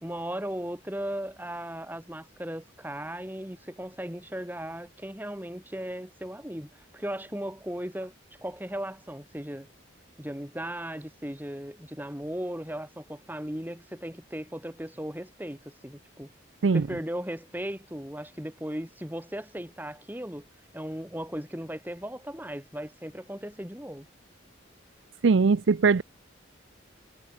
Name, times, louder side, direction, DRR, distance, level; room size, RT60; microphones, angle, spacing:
voice 1, 0.0-8.1 8.4-9.7 10.2-16.3 16.7-20.4 20.7-24.1, equal, 10° right, 2.3 m, -37 dB
voice 2, 25.2-26.0, right 4 dB, 70° right, 0.5 m, -20 dB
head